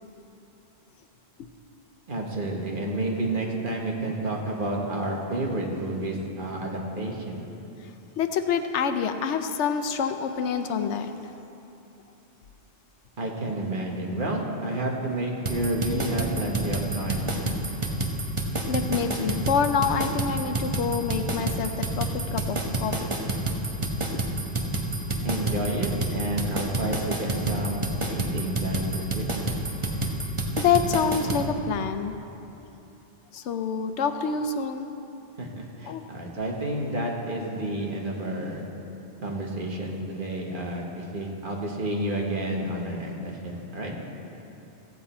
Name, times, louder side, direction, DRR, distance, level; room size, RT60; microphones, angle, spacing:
voice 1, 2.1-7.4 13.2-17.3 25.2-29.5 35.4-38.7 39.2-43.9, right 1 dB, 50° right, 0 dB, 1.4 m, -30 dB
voice 2, 8.2-11.1 18.7-22.9 30.6-32.1 33.3-34.9 35.8-36.0, left 6 dB, 80° left, 8 dB, 1.0 m, -27 dB
sound 1, 15.5-31.4, right 2 dB, 30° right, 1.0 m, -28 dB
15.0 x 8.1 x 4.3 m, 2.9 s
omnidirectional pair, 1.2 m